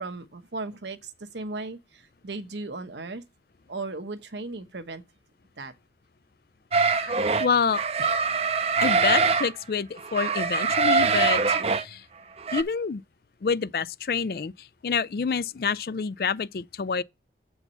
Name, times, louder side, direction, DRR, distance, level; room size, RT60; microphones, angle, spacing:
voice 1, 0.0-3.2 3.7-5.0 5.6-5.7, right 3 dB, 80° right, 1.0 m, -36 dB
sound 1, 6.7-7.5 7.7-9.5 10.0-11.8 12.4-12.6, right 4 dB, 35° right, 0.5 m, -23 dB
voice 2, 7.0-7.8 8.8-12.1 12.5-13.0 13.4-17.0, left 5 dB, 55° left, 0.4 m, -27 dB
8.1 x 4.7 x 5.5 m
head